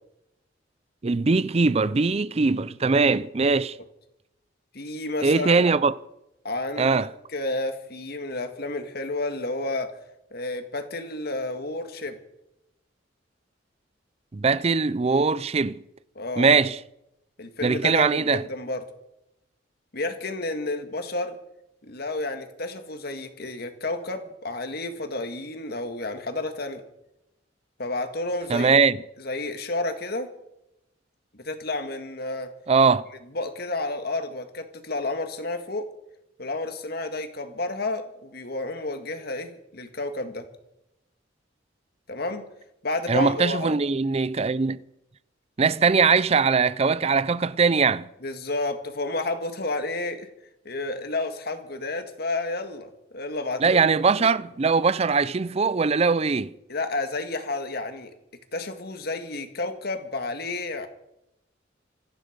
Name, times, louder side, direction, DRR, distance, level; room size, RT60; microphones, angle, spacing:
voice 1, 1.0-3.8 5.2-5.9 6.8-7.1 14.3-15.8 16.4-16.8 17.6-18.4 28.5-29.0 32.7-33.0 43.1-44.8 45.6-48.1 53.6-56.5, right 4 dB, 35° right, 0.5 m, -21 dB
voice 2, 4.7-5.6 6.4-7.0 7.3-9.9 10.3-12.2 16.2-16.5 17.4-18.8 19.9-21.4 21.8-26.8 27.8-28.8 29.2-30.3 31.4-32.5 33.3-35.9 36.4-40.5 42.1-42.4 42.8-43.8 48.2-50.3 50.7-53.8 54.1-54.3 56.7-58.1 58.5-60.9, left 2 dB, 55° left, 1.9 m, -31 dB
26.0 x 10.0 x 5.2 m
head